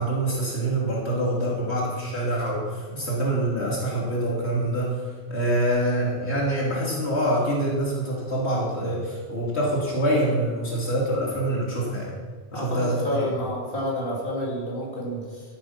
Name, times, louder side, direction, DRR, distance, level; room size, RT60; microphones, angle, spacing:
voice 1, 0.0-5.0 5.3-12.1 12.5-13.3, right 1 dB, 75° left, -4 dB, 2.9 m, -25 dB
voice 2, 12.5-15.4, left 1 dB, 55° left, -4 dB, 3.0 m, -29 dB
14.0 x 8.6 x 5.8 m, 1.5 s
omnidirectional pair, 1.1 m